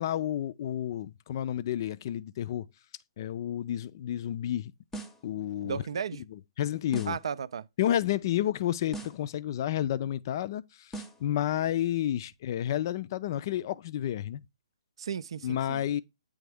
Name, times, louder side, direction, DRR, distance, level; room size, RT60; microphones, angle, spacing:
voice 1, 0.0-2.6 3.2-4.7 5.2-5.8 6.3-7.2 7.8-10.9 11.2-14.4 15.4-16.0, left 11 dB, 45° left, 0.3 m, -30 dB
sound 1, 4.9-5.3 6.9-7.3 8.9-9.3 10.9-11.3, right 2 dB, 10° left, 0.7 m, -41 dB
voice 2, 5.6-6.2 7.1-7.6 15.0-15.8, right 7 dB, 70° right, 0.4 m, -34 dB
8.3 x 3.5 x 3.4 m
hypercardioid pair, 140°, 3 cm